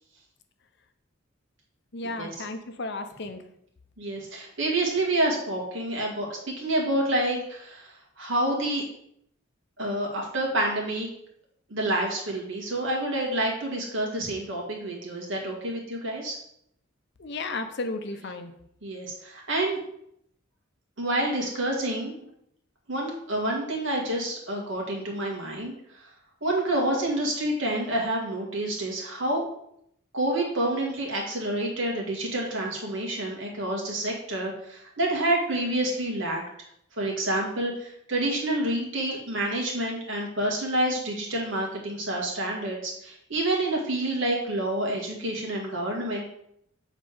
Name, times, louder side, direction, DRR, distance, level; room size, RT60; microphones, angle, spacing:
voice 1, 1.9-3.4 17.2-18.5, left 3 dB, 55° left, 7 dB, 0.8 m, -34 dB
voice 2, 4.0-8.8 9.8-11.1 11.7-16.4 18.8-19.8 21.0-22.3 22.9-25.7 26.4-29.5 30.1-36.4 37.0-46.2, right 1 dB, 65° right, -1 dB, 2.1 m, -28 dB
7.4 x 4.0 x 5.1 m, 0.72 s
head